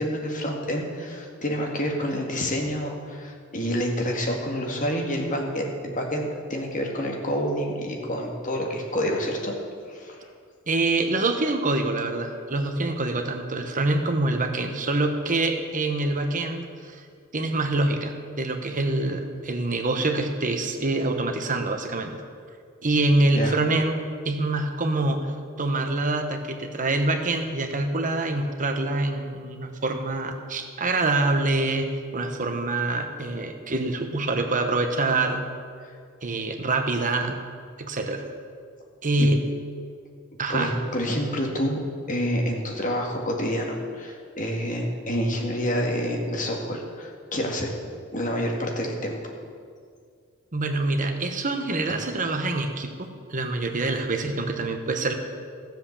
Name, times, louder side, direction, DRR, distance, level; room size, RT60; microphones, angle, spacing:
voice 1, 0.0-9.5 9.9-10.3 23.3-23.6 35.8-35.9 39.2-39.3 40.5-41.8 42.1-47.7 48.1-49.3, equal, 40° left, 1 dB, 2.0 m, -28 dB
voice 2, 10.7-17.0 17.3-22.2 22.8-24.0 24.2-25.3 25.6-35.5 36.2-37.4 37.8-38.2 39.0-39.4 40.4-40.7 50.5-55.1, right 2 dB, 40° right, 5 dB, 1.2 m, -25 dB
13.5 x 7.6 x 7.3 m, 2.1 s
head